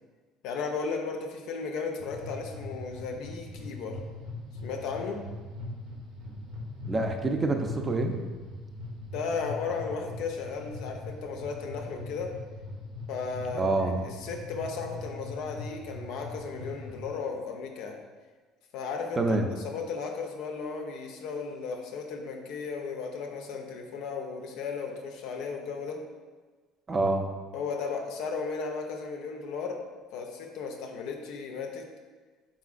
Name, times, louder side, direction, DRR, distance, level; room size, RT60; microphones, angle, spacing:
voice 1, 0.4-4.0 4.6-5.2 9.1-12.3 13.1-13.7 14.2-18.0 18.7-19.2 19.6-26.0 27.5-29.8 30.1-31.9, left 5 dB, 65° left, 3 dB, 0.5 m, -35 dB
sound 1, 2.0-17.1, left 2 dB, 65° right, 0.7 m, -41 dB
voice 2, 6.9-8.1 13.5-14.0 19.2-19.5 26.9-27.3, right 2 dB, 25° right, 4 dB, 0.5 m, -26 dB
4.1 x 3.7 x 2.4 m, 1.4 s
hypercardioid pair, 60°, 0 cm